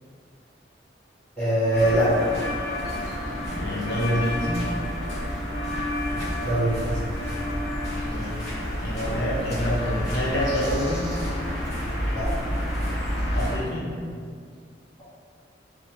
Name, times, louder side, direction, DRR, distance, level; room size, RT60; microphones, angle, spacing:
voice 1, 1.4-2.3 6.4-7.0 12.1-12.3, right 1 dB, 5° left, -13 dB, 0.9 m, -22 dB
sound 1, 1.7-13.5, equal, 40° left, 1.2 m, -29 dB
voice 2, 3.5-4.6 8.0-8.4 8.8-11.1 13.3-13.9, equal, 65° left, -5 dB, 0.6 m, -27 dB
3.3 x 2.0 x 2.9 m, 2.1 s
head